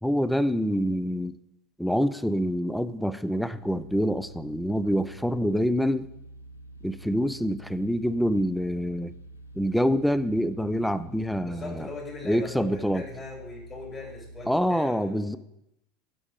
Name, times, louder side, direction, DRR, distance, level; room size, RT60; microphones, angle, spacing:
voice 1, 0.0-1.4 1.8-6.1 6.8-9.1 9.6-11.9 12.3-13.0 14.5-15.4, equal, ahead, 13 dB, 0.4 m, -26 dB
sound 1, 3.5-14.6, right 2 dB, 80° left, 0.5 m, -47 dB
voice 2, 11.4-15.4, left 4 dB, 30° left, -1 dB, 2.9 m, -40 dB
7.6 x 6.0 x 5.1 m, 0.82 s
figure-of-eight pair, 75°, 0 cm